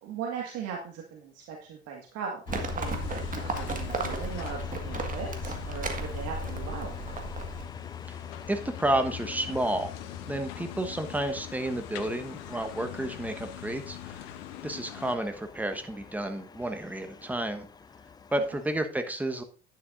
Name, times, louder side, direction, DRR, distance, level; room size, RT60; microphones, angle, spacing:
voice 1, 0.0-6.9 18.5-18.6, right 6 dB, 50° right, 0 dB, 1.8 m, -39 dB
sound 1, 2.5-18.9, left 8 dB, 10° left, 0.4 m, -42 dB
Livestock farm animals working animals, 2.5-7.6, right 4 dB, 25° right, 1.7 m, -35 dB
sound 2, 2.8-15.2, left 12 dB, 60° left, 0.7 m, -44 dB
voice 2, 8.5-9.9 10.3-14.3 14.6-17.7 18.3-19.4, right 1 dB, 5° right, 7 dB, 1.2 m, -31 dB
11.0 x 9.7 x 2.6 m, 0.39 s
figure-of-eight pair, 70°, 33 cm